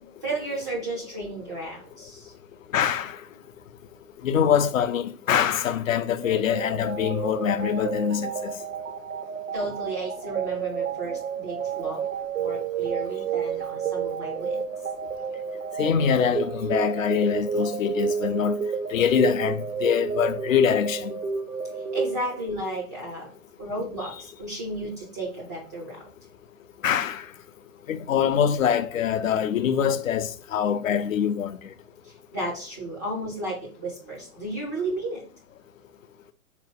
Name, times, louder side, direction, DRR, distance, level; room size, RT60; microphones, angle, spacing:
voice 1, 0.0-2.3 9.5-12.0 12.3-14.6 21.7-23.3 23.6-26.1 32.0-35.2, right 2 dB, 15° right, 0.3 m, -33 dB
voice 2, 2.7-3.2 4.2-8.5 15.8-18.6 18.9-21.1 26.8-27.2 27.9-31.6, left 8 dB, 65° left, 0.5 m, -24 dB
sound 1, 6.2-22.8, right 6 dB, 80° right, 0.8 m, -30 dB
3.9 x 2.9 x 3.4 m
figure-of-eight pair, 110°, 44 cm